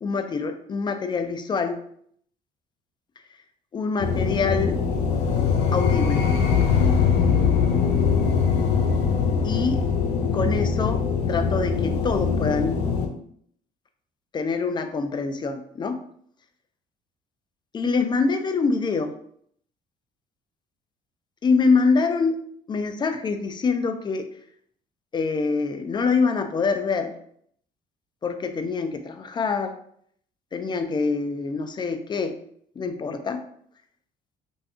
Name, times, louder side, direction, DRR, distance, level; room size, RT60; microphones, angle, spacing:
voice 1, 0.0-1.8 3.7-4.8 5.7-6.3 9.4-9.8 10.3-11.0 11.3-12.8 14.3-16.0 17.7-19.1 21.4-22.4 22.7-24.3 25.1-27.1 28.2-29.7 30.5-32.4 32.8-33.4, left 4 dB, 25° left, 7 dB, 0.4 m, -25 dB
sound 1, 4.0-13.1, left 6 dB, 90° left, 0.6 m, -22 dB
2.6 x 2.3 x 3.5 m, 0.64 s
cardioid pair, 110°, 17 cm